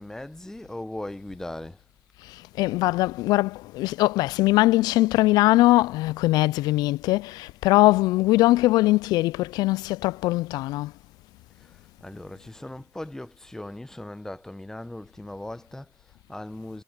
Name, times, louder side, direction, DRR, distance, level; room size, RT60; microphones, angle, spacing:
voice 1, 0.0-1.8 11.6-16.8, left 1 dB, 5° left, 1.1 m, -39 dB
voice 2, 2.2-10.9, left 18 dB, 75° left, 0.4 m, -21 dB
supercardioid pair, 70°, 7 cm